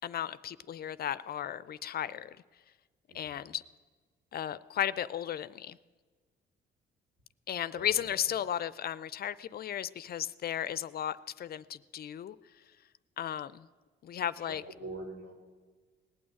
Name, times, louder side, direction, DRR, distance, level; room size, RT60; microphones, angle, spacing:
voice 1, 0.0-2.4 3.1-3.6 4.3-5.8 7.5-12.4 13.2-13.7 14.0-14.6, left 10 dB, 50° left, 17 dB, 0.4 m, -35 dB
voice 2, 7.7-8.2 14.4-15.3, right 2 dB, 70° right, 2 dB, 3.4 m, -44 dB
18.5 x 6.2 x 9.1 m, 1.4 s
cardioid pair, 90°, 20 cm